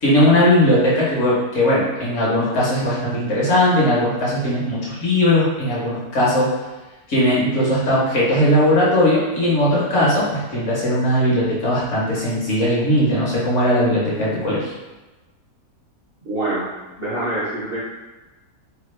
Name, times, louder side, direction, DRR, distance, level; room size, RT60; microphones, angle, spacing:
voice 1, 0.0-6.5 7.1-14.7, left 1 dB, 55° left, -6 dB, 1.1 m, -18 dB
voice 2, 16.2-16.7 17.0-17.8, right 2 dB, 55° right, -9 dB, 0.7 m, -25 dB
3.0 x 2.3 x 3.1 m, 1.1 s
omnidirectional pair, 1.6 m